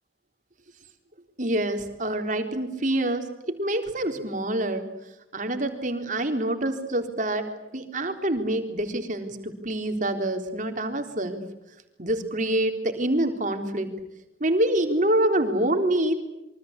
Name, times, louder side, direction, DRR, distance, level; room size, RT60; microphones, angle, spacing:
voice 1, 1.4-4.9 5.3-11.4 12.0-14.0 14.4-16.1, right 1 dB, 40° right, 5 dB, 3.8 m, -26 dB
27.5 x 24.0 x 8.3 m, 0.94 s
head